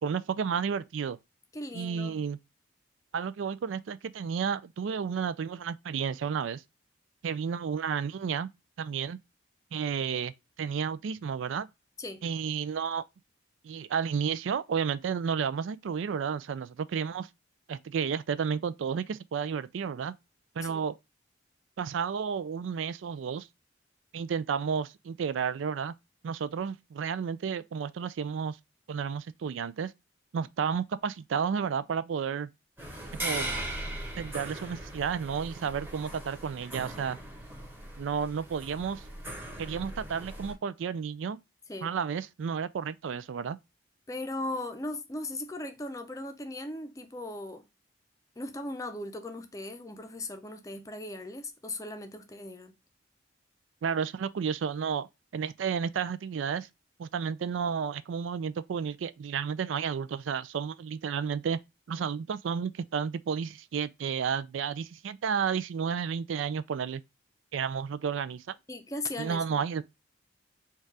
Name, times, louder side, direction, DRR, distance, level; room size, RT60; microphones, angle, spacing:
voice 1, 0.0-1.2 1.7-2.4 3.1-6.6 7.2-8.5 8.8-9.2 9.7-10.3 10.6-11.7 12.2-13.0 13.6-17.3 17.7-20.1 20.6-21.0 21.8-23.5 24.1-25.9 26.2-28.6 28.9-29.9 30.3-32.5 33.2-33.5 34.2-37.2 38.0-39.0 39.6-41.4 41.8-43.6 53.8-55.1 55.3-56.7 57.0-61.6 61.9-67.0 67.5-68.6 69.2-69.8, right 6 dB, 80° right, 0.4 m, -32 dB
voice 2, 1.5-2.2 12.0-12.2 20.6-20.8 41.7-41.9 44.1-47.6 48.4-52.7 68.7-69.6, left 2 dB, 15° left, 0.5 m, -38 dB
sound 1, 32.8-40.5, right 1 dB, 10° right, 1.1 m, -39 dB
4.5 x 2.4 x 4.6 m
head